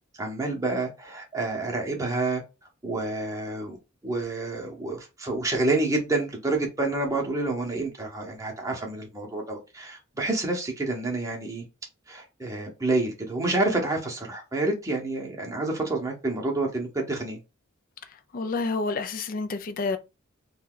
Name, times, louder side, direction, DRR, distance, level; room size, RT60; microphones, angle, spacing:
voice 1, 0.2-2.4 2.8-3.8 4.0-11.6 12.1-17.4, right 2 dB, 15° right, 0.8 m, -28 dB
voice 2, 18.3-20.0, left 3 dB, 40° left, 0.4 m, -29 dB
2.7 x 2.3 x 3.7 m
head